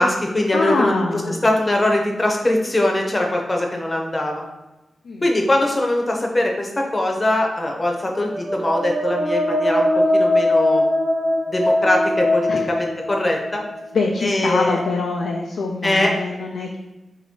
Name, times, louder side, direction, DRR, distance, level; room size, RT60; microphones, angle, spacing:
voice 1, 0.0-4.4 5.2-10.9 11.5-13.6 14.2-14.8 15.8-16.1, left 1 dB, 25° left, 1 dB, 0.7 m, -21 dB
voice 2, 0.5-1.4 5.0-5.2 12.5-12.7 13.9-16.8, left 3 dB, 80° left, -1 dB, 0.4 m, -23 dB
sound 1, 8.1-13.8, left 1 dB, 80° right, 1.0 m, -21 dB
2.9 x 2.8 x 4.4 m, 1.0 s
wide cardioid pair, 95°, 0 cm